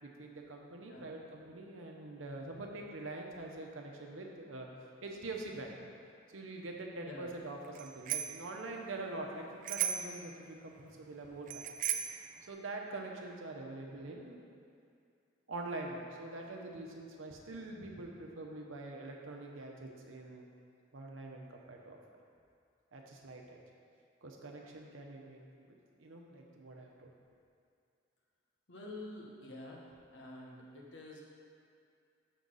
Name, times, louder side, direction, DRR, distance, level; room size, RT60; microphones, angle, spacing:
voice 1, 0.0-4.7 5.0-5.7 6.3-11.7 12.5-14.4 15.5-20.5 20.9-22.0 22.9-23.6 24.2-25.4 25.7-27.1, right 2 dB, 90° right, 1 dB, 0.9 m, -44 dB
voice 2, 7.0-7.3 28.7-29.8 30.1-31.2, left 2 dB, 70° left, -2 dB, 1.1 m, -48 dB
Bicycle bell, 7.7-8.5 9.6-10.2 11.5-12.2, right 9 dB, 40° right, 0.4 m, -36 dB
6.4 x 4.0 x 6.3 m, 2.4 s
head